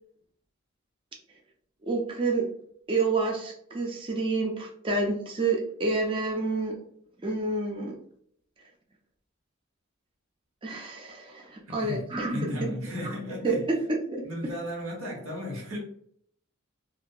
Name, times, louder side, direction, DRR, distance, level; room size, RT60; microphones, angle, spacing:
voice 1, 1.9-2.5 2.9-6.8 7.2-8.0 10.6-12.7 13.0-13.1 13.4-13.6 13.9-14.2, right 3 dB, 25° right, 0.4 m, -29 dB
voice 2, 11.7-13.7 14.2-15.8, left 1 dB, 90° right, 1.0 m, -35 dB
2.7 x 2.2 x 2.2 m
head